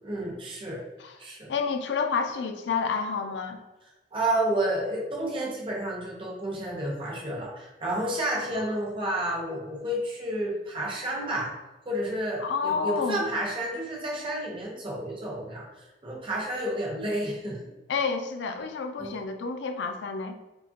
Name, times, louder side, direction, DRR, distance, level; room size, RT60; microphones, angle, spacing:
voice 1, 0.0-0.8 1.2-1.5 4.1-11.5 11.9-17.6 19.0-19.2, right 1 dB, 30° right, -3 dB, 0.8 m, -30 dB
voice 2, 1.5-3.6 8.4-8.7 12.4-13.2 17.9-20.4, left 5 dB, 85° left, 6 dB, 0.4 m, -29 dB
4.6 x 2.4 x 2.8 m, 1.1 s
head